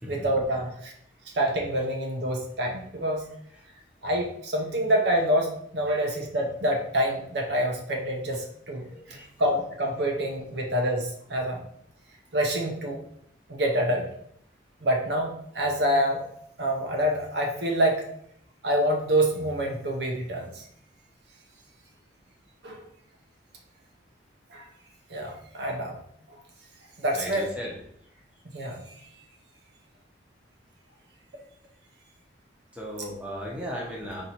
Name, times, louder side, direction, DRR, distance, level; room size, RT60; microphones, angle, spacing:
voice 1, 0.1-0.9 1.3-3.3 4.0-11.7 12.3-13.0 13.5-14.1 14.8-16.2 16.6-18.0 18.6-20.6 22.6-22.8 24.5-24.7 25.1-26.0 26.3-26.4 27.0-27.5 28.4-29.0, right 1 dB, 60° right, 1 dB, 0.6 m, -27 dB
voice 2, 8.9-9.3 27.1-27.8 32.7-34.2, equal, 5° right, -3 dB, 0.8 m, -36 dB
4.2 x 2.6 x 4.3 m, 0.71 s
head